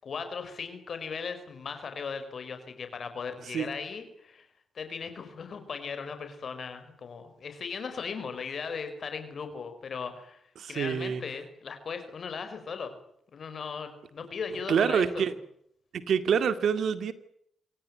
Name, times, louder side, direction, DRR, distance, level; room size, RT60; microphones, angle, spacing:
voice 1, 0.0-4.5 4.7-12.9 13.3-15.3, left 5 dB, 60° left, 8 dB, 5.0 m, -38 dB
voice 2, 10.6-11.2 14.7-15.3 15.9-17.1, right 7 dB, 70° right, 12 dB, 2.1 m, -26 dB
26.0 x 17.5 x 9.5 m, 0.71 s
hypercardioid pair, 40°, 0 cm